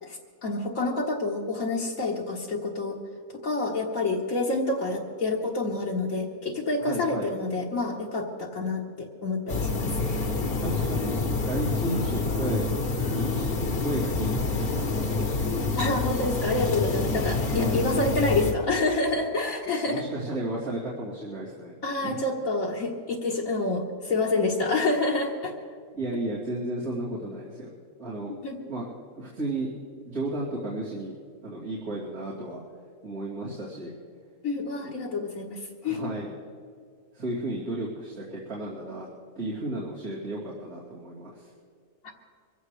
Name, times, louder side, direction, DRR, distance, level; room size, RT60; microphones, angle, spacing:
voice 1, 0.0-3.0 3.4-10.3 15.8-20.1 21.8-25.5 28.3-28.6 34.4-36.0, left 2 dB, 70° left, -3 dB, 1.8 m, -28 dB
voice 2, 6.8-7.3 10.6-12.7 13.1-13.4 13.8-15.3 17.4-17.8 19.8-21.7 22.0-22.2 25.9-27.7 28.0-28.4 28.7-29.7 30.1-31.1 31.4-32.6 33.0-33.9 34.8-34.9 35.8-36.3 37.1-39.1 39.4-41.5, right 1 dB, 85° right, -9 dB, 3.5 m, -33 dB
sound 1, 9.5-18.5, left 3 dB, 45° left, 1.3 m, -27 dB
24.5 x 15.5 x 3.3 m, 2.2 s
omnidirectional pair, 1.5 m